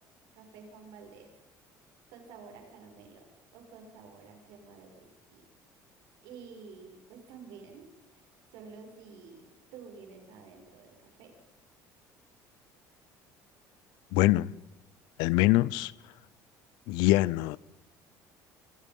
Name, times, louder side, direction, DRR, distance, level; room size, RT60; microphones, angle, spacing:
voice 1, 0.3-1.3 2.1-3.3 3.5-5.4 6.2-8.2 8.5-11.3, right 5 dB, 75° right, 7.0 m, -50 dB
voice 2, 14.1-14.5 15.2-15.9 16.9-17.6, left 18 dB, 80° left, 0.7 m, -24 dB
27.0 x 24.5 x 5.5 m
cardioid pair, 160°, 7 cm